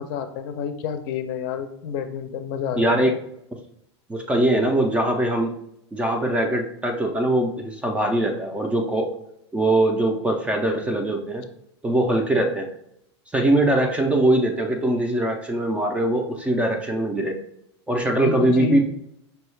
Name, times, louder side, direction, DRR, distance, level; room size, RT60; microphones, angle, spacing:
voice 1, 0.0-3.2 18.2-18.8, left 7 dB, 50° left, 8 dB, 0.5 m, -29 dB
voice 2, 2.8-3.2 4.1-5.5 5.9-9.1 9.5-11.4 11.8-12.7 13.3-17.4 17.9-18.8, right 1 dB, 10° right, 3 dB, 0.4 m, -22 dB
5.4 x 2.3 x 3.2 m, 0.75 s
supercardioid pair, 140°, 15 cm